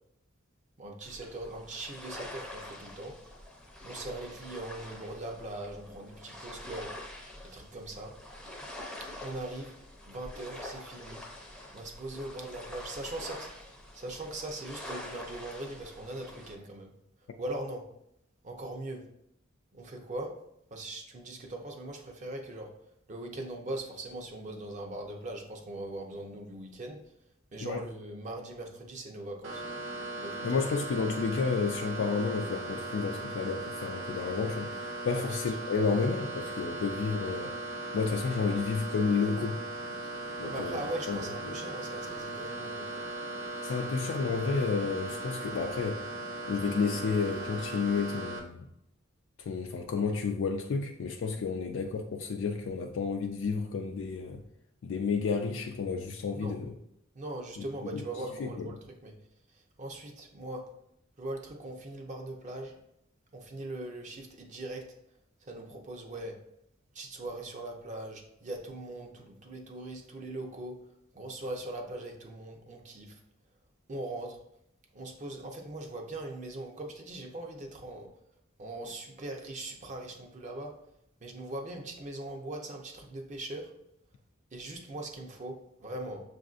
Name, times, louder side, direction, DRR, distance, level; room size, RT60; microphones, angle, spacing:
voice 1, 0.8-3.1 3.8-6.9 7.4-8.1 9.2-9.7 10.1-11.2 11.7-16.9 17.4-17.8 18.4-19.0 19.7-20.3 20.7-22.7 23.1-27.0 27.5-29.6 30.2-30.5 35.1-35.3 40.0-43.0 51.5-51.6 56.3-56.6 57.1-59.1 59.8-60.6 61.2-62.8 63.3-64.8 65.4-66.4 66.9-70.8 71.1-73.2 73.9-74.4 74.9-78.1 78.6-80.7 81.2-83.7 84.5-86.2, right 1 dB, 35° right, 0.6 m, -40 dB
sound 1, 1.0-16.6, left 1 dB, 5° left, 0.6 m, -46 dB
sound 2, 29.4-48.4, right 2 dB, 65° right, 0.9 m, -38 dB
voice 2, 30.4-37.5 37.9-39.6 40.4-40.8 41.1-41.6 43.6-46.1 46.5-48.7 49.4-54.4 54.8-56.7 57.9-58.0 58.4-58.7, left 5 dB, 65° left, 0.3 m, -31 dB
6.3 x 2.5 x 2.4 m
head